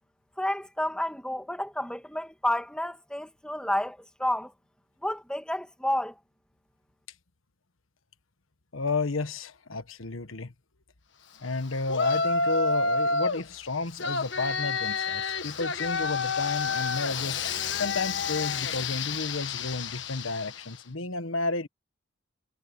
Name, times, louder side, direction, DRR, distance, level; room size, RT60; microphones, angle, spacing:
voice 1, 0.4-4.5 5.0-6.2, left 1 dB, 5° left, 1.8 m, -30 dB
voice 2, 8.7-10.5 11.4-17.4 17.7-21.7, left 3 dB, 90° left, 1.4 m, -32 dB
Yell, 11.9-13.4 14.0-20.7, left 4 dB, 60° left, 1.5 m, -29 dB
head